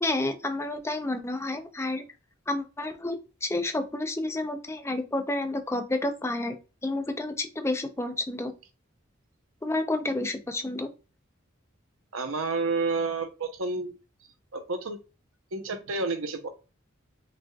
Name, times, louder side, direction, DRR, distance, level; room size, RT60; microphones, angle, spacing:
voice 1, 0.0-2.0 2.5-6.6 6.8-8.5 9.6-10.9, left 2 dB, 15° left, 7 dB, 0.6 m, -30 dB
voice 2, 12.1-13.9 14.5-15.0 15.5-16.5, right 3 dB, 75° right, 8 dB, 0.8 m, -30 dB
6.0 x 3.1 x 2.3 m, 0.31 s
head